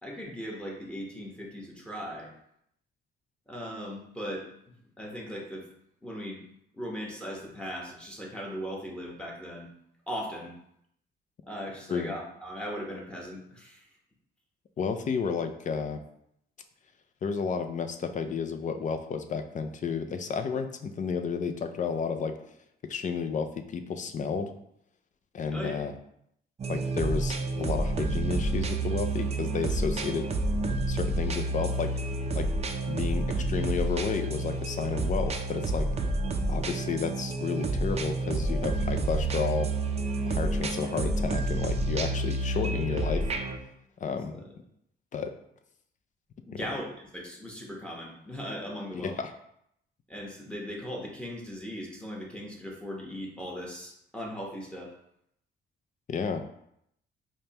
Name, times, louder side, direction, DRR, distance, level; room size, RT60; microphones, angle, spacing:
voice 1, 0.0-2.3 3.5-4.5 5.0-5.7 6.0-6.4 6.7-9.7 10.1-10.5 11.5-13.8 25.5-25.7 44.3-44.5 46.5-49.1 50.1-54.9, equal, 5° left, -2 dB, 1.1 m, -38 dB
voice 2, 14.8-16.0 17.2-22.3 22.9-24.5 25.3-25.9 26.7-30.3 30.9-31.9 32.3-32.5 32.9-35.9 36.5-39.7 40.3-43.3 44.0-44.4 45.1-45.3 46.5-46.7 48.9-49.3 56.1-56.4, left 5 dB, 40° left, 6 dB, 0.4 m, -32 dB
sound 1, 26.6-43.6, right 2 dB, 30° right, 0.5 m, -29 dB
5.0 x 2.2 x 2.9 m, 0.74 s
cardioid pair, 90°, 20 cm